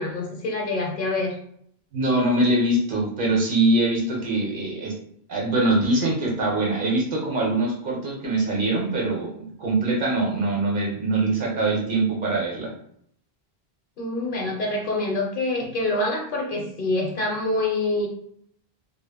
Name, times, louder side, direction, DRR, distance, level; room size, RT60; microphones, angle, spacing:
voice 1, 0.0-1.3 14.0-18.1, left 2 dB, 60° left, -1 dB, 0.7 m, -26 dB
voice 2, 1.9-4.9 5.3-12.7, right 2 dB, 60° right, -2 dB, 0.8 m, -23 dB
2.1 x 2.0 x 3.3 m, 0.67 s
omnidirectional pair, 1.1 m